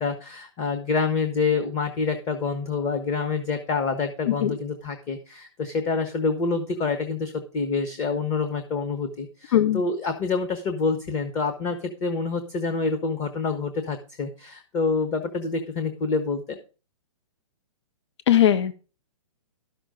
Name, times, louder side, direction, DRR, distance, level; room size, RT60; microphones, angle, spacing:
voice 1, 0.0-16.6, left 4 dB, 20° left, 7 dB, 1.0 m, -27 dB
voice 2, 9.5-9.8 18.3-18.7, left 11 dB, 60° left, 12 dB, 0.8 m, -19 dB
12.5 x 6.1 x 5.1 m, 0.34 s
hypercardioid pair, 160°, 17 cm